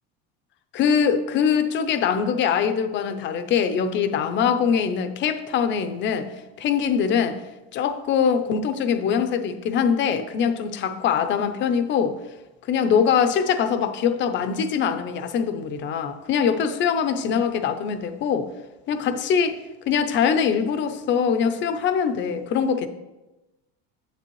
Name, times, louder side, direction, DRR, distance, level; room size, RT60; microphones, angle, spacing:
voice 1, 0.7-6.3 6.6-7.4 7.7-12.2 12.7-18.5 18.9-19.6 19.9-22.9, left 7 dB, 35° left, 0.6 m, -23 dB
9.6 x 8.1 x 3.1 m
cardioid pair, 155°, 33 cm